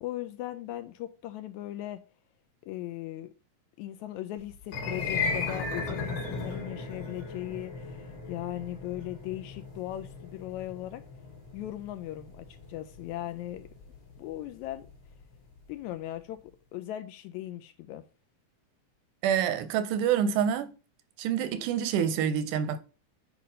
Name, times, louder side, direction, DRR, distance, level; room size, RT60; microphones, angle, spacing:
voice 1, 0.0-2.0 2.6-3.3 3.8-11.0 11.5-13.7 14.2-14.9 15.7-18.0, left 14 dB, 80° left, 1.8 m, -38 dB
sound 1, 4.6-14.9, left 4 dB, 50° left, 3.7 m, -36 dB
voice 2, 19.2-20.7 21.2-22.8, right 8 dB, 90° right, 2.2 m, -27 dB
8.5 x 3.2 x 5.2 m
omnidirectional pair, 3.7 m